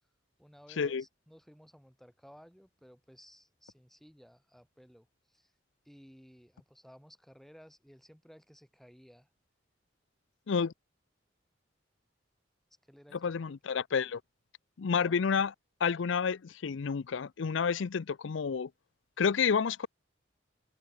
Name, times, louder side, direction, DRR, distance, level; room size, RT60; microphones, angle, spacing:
voice 1, 0.4-5.5 5.8-9.3 12.9-13.6 14.9-15.2, equal, ahead, 7.2 m, -57 dB
voice 2, 13.1-14.2 14.8-15.5 15.8-18.7 19.2-19.9, left 6 dB, 75° left, 0.5 m, -30 dB
head